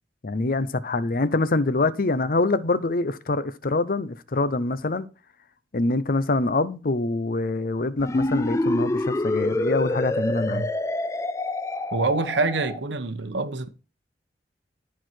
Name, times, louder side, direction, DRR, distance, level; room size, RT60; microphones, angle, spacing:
voice 1, 0.2-5.1 5.7-10.7, left 2 dB, 50° left, 0.7 m, -25 dB
sound 1, 8.0-12.8, left 2 dB, 15° left, 0.3 m, -26 dB
voice 2, 11.9-13.7, right 3 dB, 80° right, 1.0 m, -26 dB
12.5 x 4.7 x 4.4 m
head